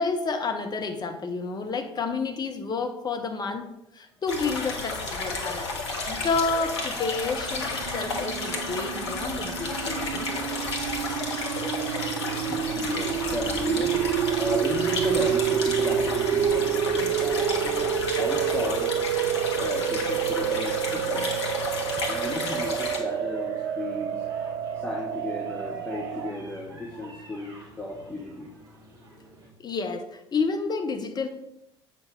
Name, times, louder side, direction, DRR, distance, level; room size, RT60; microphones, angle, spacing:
voice 1, 0.0-3.7 3.9-5.7 6.1-10.3 29.6-31.3, left 4 dB, 30° left, 5 dB, 1.1 m, -30 dB
sound 1, 4.3-23.0, left 3 dB, 75° left, 1.2 m, -32 dB
sound 2, 7.2-26.3, right 10 dB, 45° right, 0.4 m, -29 dB
sound 3, 9.9-29.5, right 4 dB, 25° right, 2.9 m, -43 dB
voice 2, 12.5-13.9 14.4-19.0 19.6-21.3 22.1-24.2 24.8-28.5, left 1 dB, 10° left, -2 dB, 1.3 m, -34 dB
7.8 x 5.9 x 3.4 m, 0.85 s
figure-of-eight pair, 60°, 14 cm